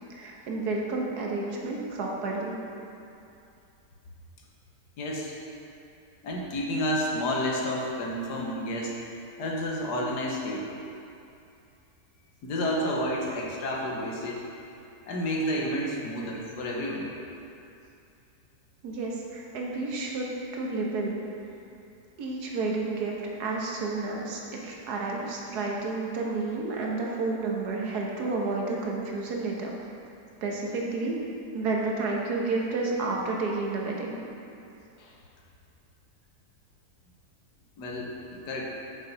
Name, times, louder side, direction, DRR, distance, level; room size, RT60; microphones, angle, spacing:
voice 1, 0.1-2.6 18.8-20.3 20.5-21.2 22.2-29.7 30.4-31.2 31.5-34.2, right 3 dB, 75° right, -2 dB, 1.6 m, -30 dB
voice 2, 5.0-5.3 6.2-9.0 9.4-10.7 12.4-14.4 15.1-17.1 35.0-35.1 37.8-38.1 38.4-38.7, equal, 85° left, -2 dB, 1.6 m, -30 dB
6.4 x 5.6 x 5.2 m, 2.7 s
omnidirectional pair, 1.7 m